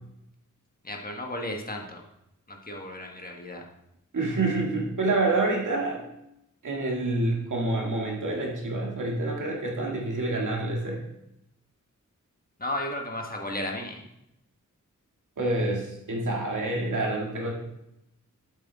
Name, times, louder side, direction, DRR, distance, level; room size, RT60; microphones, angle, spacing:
voice 1, 0.8-2.0 2.5-3.6 12.6-14.0, left 1 dB, 30° left, 1 dB, 1.3 m, -34 dB
voice 2, 4.1-6.0 6.6-11.0 15.4-17.5, right 2 dB, 70° right, -1 dB, 2.1 m, -27 dB
8.0 x 8.0 x 3.5 m, 0.83 s
wide cardioid pair, 110°, 31 cm